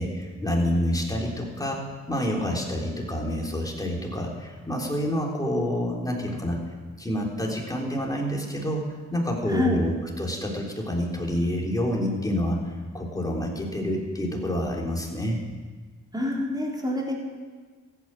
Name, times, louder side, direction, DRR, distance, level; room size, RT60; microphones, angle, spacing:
voice 1, 0.0-1.8 2.1-6.6 7.0-8.8 9.1-12.6 12.9-15.4, equal, 10° left, -1 dB, 3.6 m, -28 dB
voice 2, 16.1-17.1, left 1 dB, 15° right, -2 dB, 3.9 m, -26 dB
15.0 x 9.5 x 7.6 m, 1.5 s
cardioid pair, 80°, 30 cm